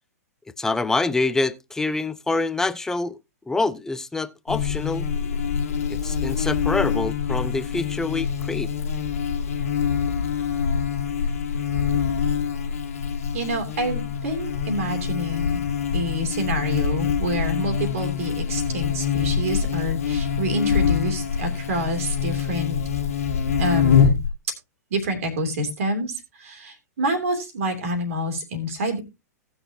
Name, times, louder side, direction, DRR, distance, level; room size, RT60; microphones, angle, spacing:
voice 1, 0.6-3.2 3.5-5.1 5.9-8.7, left 3 dB, 5° left, 0.5 m, -26 dB
Buzz, 4.5-24.3, left 7 dB, 60° left, 1.6 m, -25 dB
voice 2, 13.3-15.6 15.9-22.8 23.6-24.2 24.9-29.0, right 1 dB, 55° right, 3.0 m, -27 dB
18.0 x 6.4 x 2.8 m
figure-of-eight pair, 105°, 9 cm